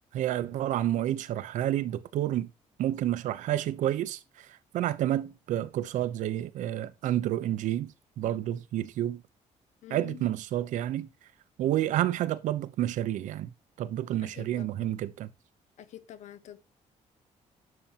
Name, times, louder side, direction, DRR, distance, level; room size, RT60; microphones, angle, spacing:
voice 1, 0.1-2.5 2.8-9.2 9.9-11.1 11.6-13.5 13.8-15.3, right 12 dB, 80° right, 0.8 m, -30 dB
voice 2, 9.8-10.3 14.2-14.8 15.8-16.6, left 12 dB, 70° left, 1.1 m, -47 dB
11.0 x 6.9 x 2.9 m
cardioid pair, 175°, 13 cm